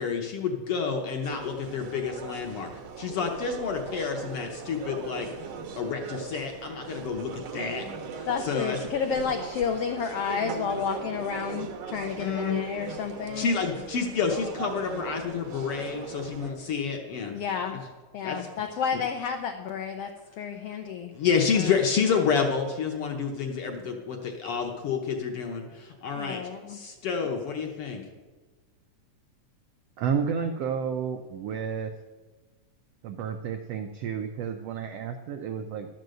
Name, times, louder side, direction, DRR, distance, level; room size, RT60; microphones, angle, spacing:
voice 1, 0.0-2.7 3.0-5.3 5.8-7.8 8.1-8.8 12.2-12.6 13.4-17.3 18.2-18.4 21.1-26.4 26.7-28.0, left 6 dB, 65° left, 3 dB, 1.5 m, -29 dB
sound 1, 1.2-16.5, right 5 dB, 65° right, 1.8 m, -39 dB
voice 2, 8.3-13.5 14.0-14.1 17.3-17.8 18.1-21.8 26.2-26.8, left 6 dB, 85° left, 5 dB, 1.3 m, -31 dB
voice 3, 30.0-31.9 33.0-35.9, right 7 dB, 90° right, 5 dB, 1.4 m, -31 dB
12.0 x 5.3 x 7.7 m, 1.3 s
omnidirectional pair, 3.6 m